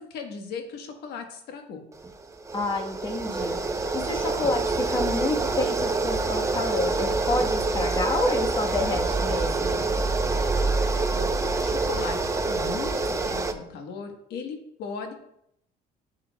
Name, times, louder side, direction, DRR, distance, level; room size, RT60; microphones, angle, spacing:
voice 1, 0.0-1.8 11.1-15.1, left 5 dB, 75° left, 4 dB, 1.3 m, -37 dB
sound 1, 1.9-13.5, right 3 dB, 20° right, 0.7 m, -26 dB
voice 2, 2.5-9.9, left 2 dB, 25° left, 2 dB, 1.3 m, -29 dB
11.5 x 6.5 x 2.3 m, 0.76 s
cardioid pair, 110°, 17 cm